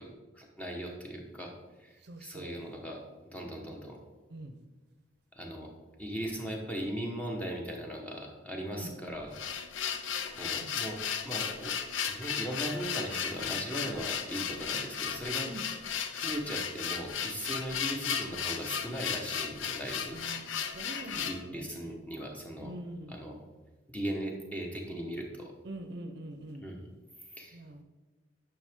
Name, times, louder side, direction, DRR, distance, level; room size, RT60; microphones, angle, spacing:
voice 1, 0.0-1.5 1.8-3.0 3.3-4.0 5.3-5.7 6.0-9.3 10.3-11.0 11.2-11.7 12.0-15.5 16.1-20.2 21.1-22.7 23.1-23.4 23.9-25.5 26.6-26.8 27.3-27.8, right 1 dB, 5° left, 0 dB, 1.1 m, -38 dB
voice 2, 2.0-2.6 4.3-4.6 8.7-8.9 10.6-10.8 15.4-15.7 20.1-22.0 22.6-23.1 25.6-26.6 27.5-27.8, right 1 dB, 55° right, 7 dB, 0.7 m, -44 dB
sound 1, 9.1-21.4, left 7 dB, 80° left, 0.6 m, -35 dB
9.9 x 5.9 x 3.6 m, 1.2 s
head